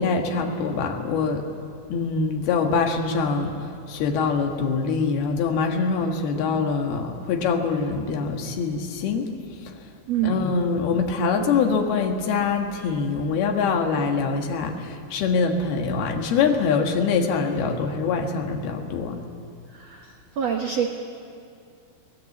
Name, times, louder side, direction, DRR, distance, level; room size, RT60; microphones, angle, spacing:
voice 1, 0.0-1.5 1.9-3.6 3.9-9.3 9.6-9.7 10.2-19.2, left 5 dB, 70° left, 4 dB, 3.3 m, -24 dB
voice 2, 10.1-10.4 19.7-20.9, right 9 dB, 80° right, 2 dB, 1.5 m, -26 dB
22.5 x 18.5 x 8.4 m, 2.4 s
omnidirectional pair, 4.9 m